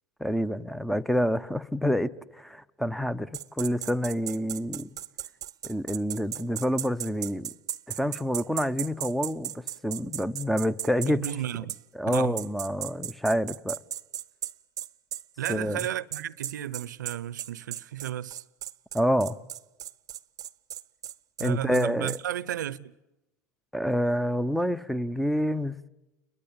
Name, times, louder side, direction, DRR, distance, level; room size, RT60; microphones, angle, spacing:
voice 1, 0.2-5.0 5.6-7.5 8.0-11.3 12.0-13.8 15.5-15.8 18.9-19.4 21.4-22.2 23.7-25.7, equal, ahead, 1.1 m, -27 dB
sound 1, 3.3-11.3 11.7-11.8 12.1-22.2, right 12 dB, 40° right, 0.9 m, -36 dB
voice 2, 11.1-11.7 12.1-12.4 15.4-18.4 21.4-23.0, right 12 dB, 80° right, 0.9 m, -33 dB
30.0 x 22.5 x 8.8 m
hypercardioid pair, 85°, 10 cm